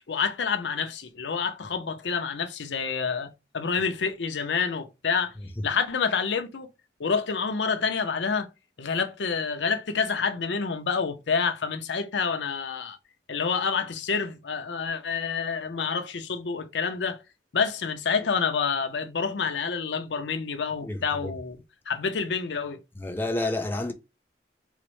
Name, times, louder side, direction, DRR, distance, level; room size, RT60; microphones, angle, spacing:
voice 1, 0.1-5.3 5.6-6.7 7.0-8.5 8.8-13.0 13.3-17.2 17.5-22.8, left 5 dB, 80° left, 0.6 m, -28 dB
voice 2, 20.8-21.3 23.0-23.9, left 2 dB, 10° left, 0.4 m, -30 dB
4.0 x 2.1 x 3.1 m
head